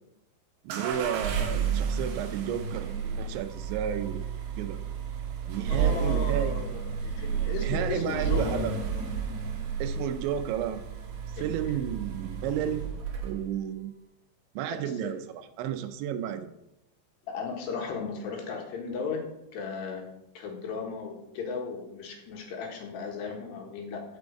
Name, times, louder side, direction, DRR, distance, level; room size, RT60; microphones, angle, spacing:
voice 1, 0.6-4.2 4.6-4.8 5.5-6.6 7.6-8.7 9.8-10.8 11.3-12.9 13.2-13.9 14.6-16.5, right 10 dB, 80° right, 9 dB, 3.0 m, -32 dB
sound 1, 0.7-13.5, right 6 dB, 60° right, 2.7 m, -31 dB
voice 2, 5.7-8.6 11.4-11.8 12.4-12.8 14.7-15.2 17.3-19.2 19.5-20.1 20.4-24.0, left 5 dB, 70° left, 1 dB, 3.7 m, -36 dB
16.0 x 6.2 x 4.8 m, 0.86 s
omnidirectional pair, 5.3 m